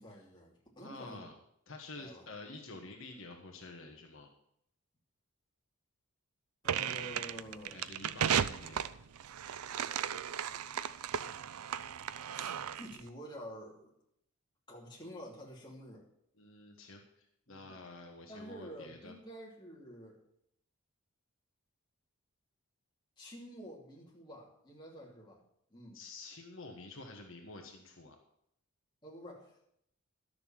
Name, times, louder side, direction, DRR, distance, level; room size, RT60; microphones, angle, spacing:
voice 1, 0.0-1.2 2.0-2.3 6.6-7.8 12.3-13.9 14.7-16.0 17.5-17.8 18.3-20.2 23.2-25.4 25.7-26.0 29.0-29.6, equal, 20° left, -3 dB, 2.7 m, -49 dB
voice 2, 0.8-1.3 1.7-4.3 7.7-8.9 16.4-19.1 25.9-28.2, left 2 dB, 60° left, 2 dB, 1.5 m, -49 dB
sound 1, 6.6-13.0, right 8 dB, 85° right, 0.5 m, -35 dB
12.0 x 6.8 x 7.3 m, 0.72 s
head